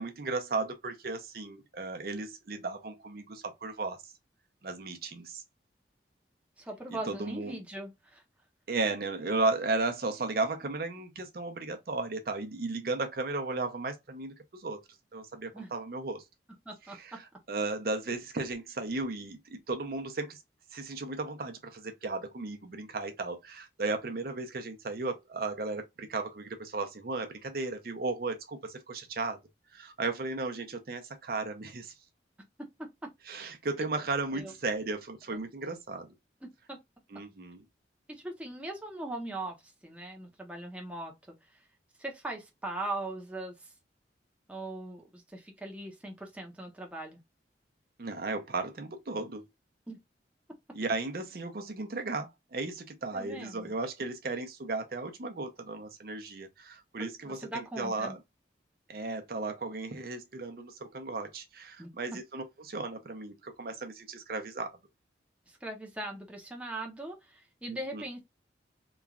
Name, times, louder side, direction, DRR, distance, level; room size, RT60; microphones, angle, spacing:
voice 1, 0.0-4.0 4.6-5.4 7.0-7.6 8.7-14.8 15.1-16.2 16.9-20.4 20.7-29.4 29.7-31.9 33.3-36.1 37.1-37.6 48.0-49.4 50.7-58.2 58.9-64.7 67.7-68.0, right 3 dB, 55° right, 0.6 m, -35 dB
voice 2, 6.6-8.2 15.5-15.7 16.7-17.2 32.6-32.7 34.3-34.5 35.3-35.7 36.4-36.8 38.1-39.6 39.8-41.3 42.0-43.7 44.5-47.2 49.9-50.0 53.1-53.7 57.2-58.2 61.8-61.9 65.6-68.2, right 2 dB, 5° right, 0.6 m, -40 dB
3.0 x 2.3 x 2.3 m
head